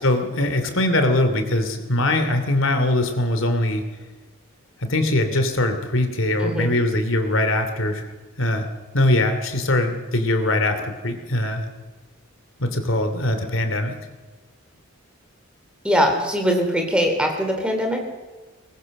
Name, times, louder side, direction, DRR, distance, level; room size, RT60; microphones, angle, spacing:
voice 1, 0.0-3.8 4.8-8.0 8.4-8.7 8.9-11.7 12.6-13.9, left 1 dB, 70° left, 7 dB, 2.8 m, -21 dB
voice 2, 6.4-6.7 15.8-18.0, equal, 5° right, 3 dB, 3.4 m, -21 dB
22.5 x 20.5 x 6.6 m, 1.3 s
head